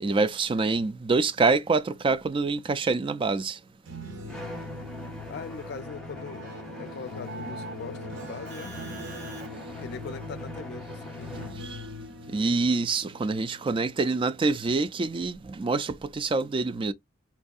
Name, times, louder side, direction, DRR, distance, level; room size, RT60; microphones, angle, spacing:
voice 1, 0.0-3.6 11.6-11.8 12.3-16.9, right 3 dB, 25° right, 0.3 m, -26 dB
sound 1, 3.7-6.6 7.3-14.3 14.6-15.0, right 1 dB, 80° right, 0.7 m, -46 dB
Keyboard (musical), 4.0-12.4, left 3 dB, 60° right, 1.1 m, -42 dB
Bowed string instrument, 4.3-11.7, equal, 5° left, 0.9 m, -42 dB
voice 2, 5.3-8.7 9.7-11.5, left 4 dB, 60° left, 0.5 m, -41 dB
4.3 x 2.6 x 2.3 m
head